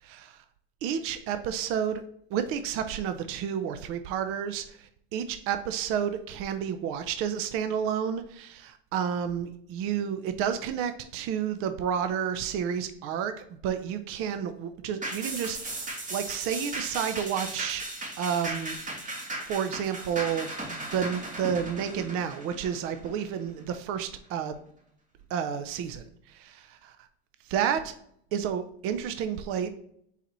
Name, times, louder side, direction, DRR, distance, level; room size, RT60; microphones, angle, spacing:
voice 1, 0.0-0.4 0.8-2.0 2.3-17.8 18.2-18.8 19.4-24.6 25.3-27.0 27.4-27.9 28.3-29.7, right 8 dB, 50° right, 9 dB, 0.5 m, -31 dB
sound 1, 15.0-23.7 24.1-24.2, right 2 dB, 25° right, 1.4 m, -37 dB
4.1 x 4.0 x 2.9 m, 0.68 s
supercardioid pair, 110°, 29 cm